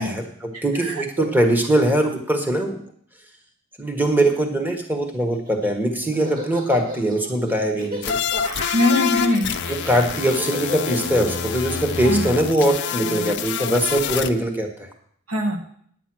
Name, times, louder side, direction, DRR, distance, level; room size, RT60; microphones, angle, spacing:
voice 1, 0.0-2.8 3.8-8.2 9.7-14.9, right 1 dB, 10° right, 4 dB, 1.4 m, -22 dB
voice 2, 0.5-1.0 8.7-9.5 12.0-12.2 15.3-15.6, left 1 dB, 80° right, 3 dB, 1.6 m, -22 dB
Laughter, 5.3-13.7, left 1 dB, 45° right, 3.5 m, -35 dB
sound 1, 8.0-14.3, left 7 dB, 55° left, 0.6 m, -27 dB
9.3 x 9.3 x 6.2 m, 0.63 s
head